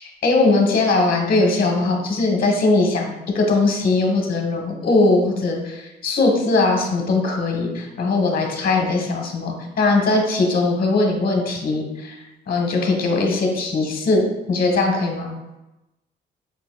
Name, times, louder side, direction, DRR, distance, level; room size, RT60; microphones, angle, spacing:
voice 1, 0.2-12.2 12.5-14.2 14.5-15.3, left 3 dB, 45° left, 2 dB, 1.1 m, -20 dB
5.4 x 3.8 x 2.3 m, 0.98 s
cardioid pair, 90°, 20 cm